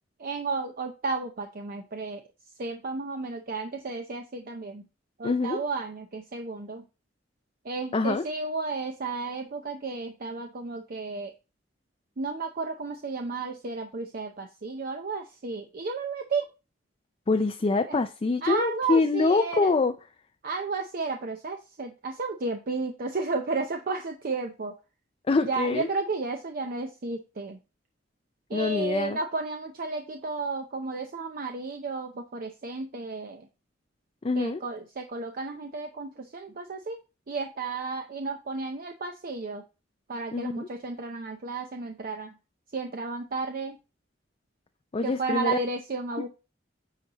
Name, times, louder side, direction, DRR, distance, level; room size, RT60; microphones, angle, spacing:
voice 1, 0.2-2.2 2.6-4.8 5.2-6.8 7.6-11.3 12.2-16.5 17.9-18.0 18.4-19.7 20.4-24.7 25.4-27.6 28.5-33.5 34.4-37.0 37.3-39.6 40.1-42.3 42.7-43.8 45.0-46.3, right 3 dB, 50° right, 0.6 m, -33 dB
voice 2, 5.2-5.6 7.9-8.2 17.3-19.9 25.3-25.9 28.5-29.2 34.2-34.6 40.3-40.7 44.9-45.6, left 3 dB, 30° left, 0.4 m, -25 dB
8.9 x 4.1 x 2.9 m
head